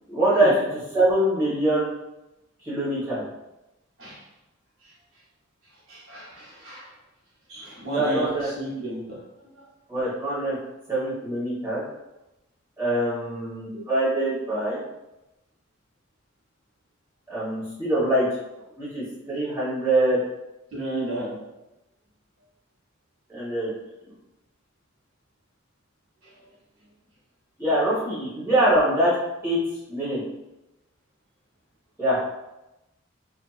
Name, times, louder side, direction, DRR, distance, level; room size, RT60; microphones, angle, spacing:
voice 1, 0.1-0.6 0.9-1.9 2.6-3.2 7.9-8.5 9.9-10.5 10.9-11.8 12.8-14.8 17.3-18.3 18.8-20.2 23.3-23.7 27.6-29.1 29.4-29.6 29.9-30.2 32.0-32.2, right 1 dB, 15° right, -11 dB, 1.2 m, -23 dB
voice 2, 5.9-6.9 7.5-9.2 20.7-21.3, right 1 dB, 70° right, -7 dB, 0.9 m, -32 dB
2.6 x 2.2 x 2.3 m, 0.96 s
head